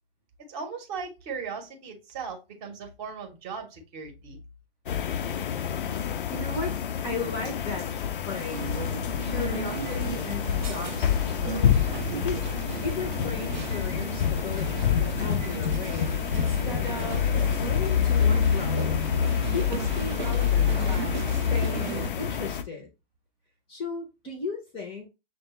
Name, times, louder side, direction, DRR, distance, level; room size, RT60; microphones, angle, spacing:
voice 1, 0.5-4.4, right 5 dB, 25° right, 0.9 m, -38 dB
sound 1, 4.9-22.6, left 8 dB, 55° left, 0.5 m, -27 dB
voice 2, 6.3-6.8 7.0-8.8 9.2-12.4 12.8-19.0 19.5-22.9 23.7-25.1, left 3 dB, 20° left, 0.7 m, -36 dB
sound 2, 8.5-22.1, right 8 dB, 50° right, 0.5 m, -36 dB
6.4 x 2.2 x 3.0 m
figure-of-eight pair, 110°, 31 cm